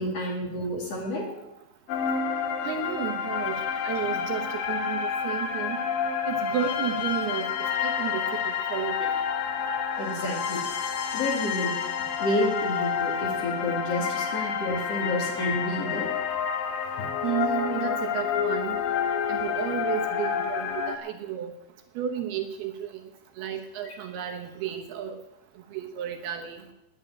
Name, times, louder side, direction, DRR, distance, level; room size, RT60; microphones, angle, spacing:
voice 1, 0.0-1.4 10.0-10.6 11.1-11.8 12.2-16.1 17.7-17.9 23.8-24.0, left 1 dB, 45° left, 0 dB, 2.8 m, -30 dB
sound 1, 1.9-21.0, left 7 dB, 65° left, 2.7 m, -29 dB
voice 2, 2.6-3.6 3.8-5.8 6.3-7.4 7.8-9.1 17.2-18.8 19.3-21.5 22.0-22.9 23.4-25.2 25.7-26.6, right 10 dB, 70° right, 4 dB, 2.8 m, -32 dB
10.5 x 9.9 x 8.8 m, 0.87 s
omnidirectional pair, 5.0 m